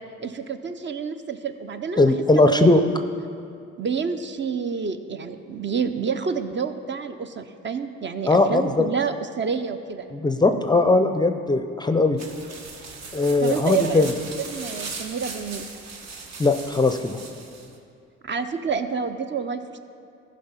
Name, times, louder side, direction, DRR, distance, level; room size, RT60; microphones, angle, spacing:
voice 1, 0.2-2.7 3.8-10.1 13.4-14.1 14.4-15.7 18.2-19.8, right 6 dB, 40° right, 9 dB, 0.6 m, -28 dB
voice 2, 2.0-2.8 8.3-8.8 10.1-12.2 13.1-14.1 16.4-17.2, left 2 dB, 15° left, 7 dB, 0.5 m, -19 dB
sound 1, 12.2-17.8, right 4 dB, 60° right, 1.4 m, -38 dB
14.5 x 5.2 x 5.6 m, 2.4 s
cardioid pair, 90°, 30 cm